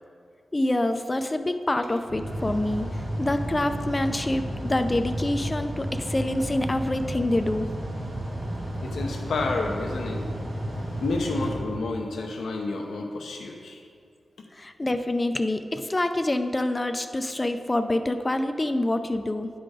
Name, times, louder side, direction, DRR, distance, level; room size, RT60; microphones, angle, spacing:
voice 1, 0.5-7.7 14.5-19.5, left 1 dB, 30° left, 8 dB, 0.5 m, -26 dB
Mechanical fan, 1.7-12.3, equal, 65° right, 1.9 m, -32 dB
voice 2, 8.8-10.3 11.0-13.8, left 3 dB, 90° left, 1 dB, 0.7 m, -30 dB
10.0 x 3.9 x 4.8 m, 2.3 s
cardioid pair, 55°, 0 cm